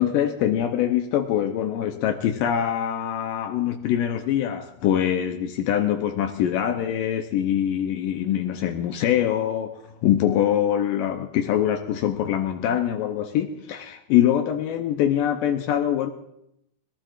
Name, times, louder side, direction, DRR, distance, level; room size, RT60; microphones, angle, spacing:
voice 1, 0.0-16.1, left 10 dB, 80° left, 2.0 m, -24 dB
21.5 x 18.5 x 2.5 m
omnidirectional pair, 4.7 m